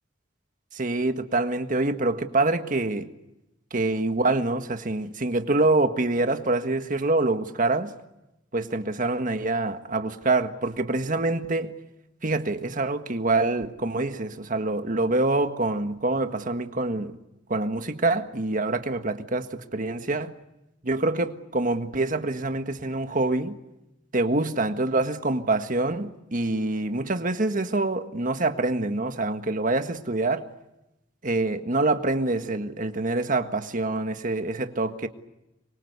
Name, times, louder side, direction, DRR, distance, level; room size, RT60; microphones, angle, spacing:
voice 1, 0.7-3.1 3.7-7.9 8.5-11.7 12.2-17.1 17.5-20.3 20.8-23.6 24.1-30.5 31.2-35.1, right 2 dB, 45° right, 1.7 m, -25 dB
26.0 x 23.5 x 8.1 m
head